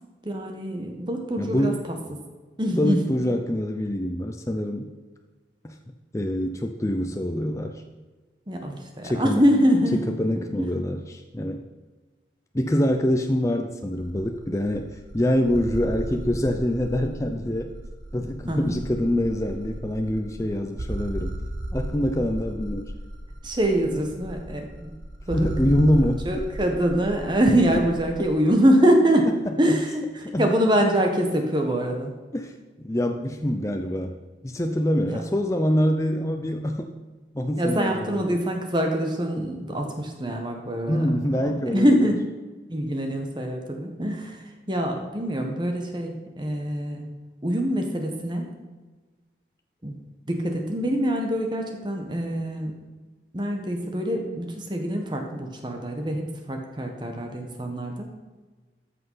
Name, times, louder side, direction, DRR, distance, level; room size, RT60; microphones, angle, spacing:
voice 1, 0.2-1.7 2.6-3.0 8.5-10.0 10.6-10.7 18.5-18.8 23.4-24.9 25.3-25.5 26.2-29.3 29.6-32.1 35.0-35.2 37.6-41.1 41.4-42.3 42.7-44.4 44.7-47.1 47.4-48.5 49.8-49.9 50.3-52.7 53.3-58.1, equal, 25° right, 3 dB, 1.2 m, -24 dB
voice 2, 1.4-1.8 2.8-4.9 5.6-5.7 6.1-7.8 9.0-9.4 10.1-11.6 12.5-17.7 18.1-21.4 21.7-22.9 25.3-26.4 29.4-29.8 30.2-30.5 32.3-34.1 34.4-36.9 37.3-38.4 40.9-42.1, equal, 15° left, 4 dB, 0.5 m, -25 dB
sound 1, 13.9-28.3, right 1 dB, 80° right, 1.3 m, -35 dB
14.0 x 5.7 x 5.6 m, 1.3 s
head